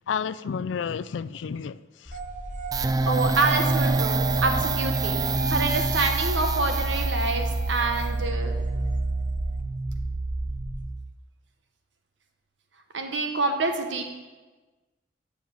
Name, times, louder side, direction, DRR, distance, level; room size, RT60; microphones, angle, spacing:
voice 1, 0.0-2.2, left 6 dB, 90° left, 0.4 m, -31 dB
sound 1, 2.0-10.9, left 1 dB, 30° left, 1.9 m, -37 dB
sound 2, 2.1-9.6, right 4 dB, 45° right, 1.0 m, -37 dB
sound 3, 2.7-11.2, right 3 dB, 20° right, 0.4 m, -27 dB
voice 2, 2.8-5.2 5.5-8.6 12.9-14.0, right 3 dB, 85° right, 1.2 m, -27 dB
7.1 x 7.1 x 7.5 m
head